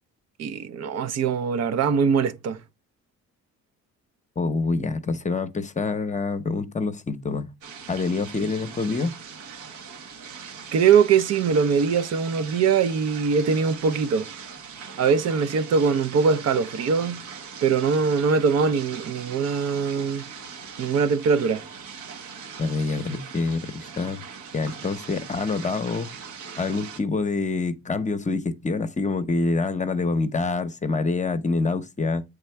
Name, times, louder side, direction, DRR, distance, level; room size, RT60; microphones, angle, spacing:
voice 1, 0.4-2.6 10.7-14.3 15.0-17.2 17.6-20.3 20.8-21.6, right 6 dB, 60° right, 0.6 m, -22 dB
voice 2, 4.4-7.5 7.9-9.2 22.6-24.2 24.5-26.1 26.6-32.2, left 3 dB, 25° left, 0.7 m, -26 dB
sound 1, 7.6-27.0, right 6 dB, 80° right, 1.1 m, -41 dB
8.2 x 3.6 x 3.2 m
cardioid pair, 90°, 30 cm